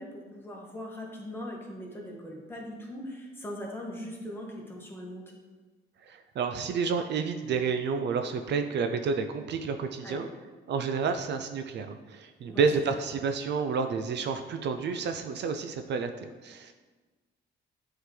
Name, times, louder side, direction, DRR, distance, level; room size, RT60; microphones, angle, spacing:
voice 1, 0.0-5.2 10.0-10.3 12.4-12.6, left 1 dB, 10° left, -3 dB, 1.5 m, -40 dB
voice 2, 6.0-10.3 10.7-16.1 16.4-16.7, right 5 dB, 60° right, 7 dB, 0.4 m, -30 dB
7.9 x 3.9 x 3.3 m, 1.3 s
cardioid pair, 90°, 20 cm